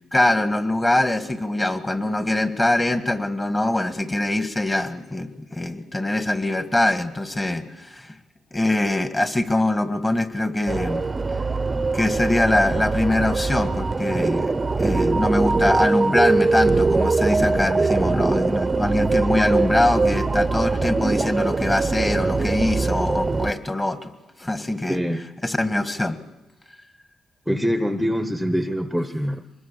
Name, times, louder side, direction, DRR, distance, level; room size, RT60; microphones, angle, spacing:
voice 1, 0.1-8.2 8.5-11.1 11.9-24.1 24.4-25.0 25.4-26.2, left 1 dB, 20° left, 9 dB, 1.7 m, -23 dB
sound 1, 10.7-23.5, right 3 dB, 25° right, 0.8 m, -22 dB
voice 2, 24.9-25.3 27.5-29.4, equal, ahead, 8 dB, 1.0 m, -24 dB
24.0 x 21.0 x 7.0 m, 1.0 s
cardioid pair, 90°, 0 cm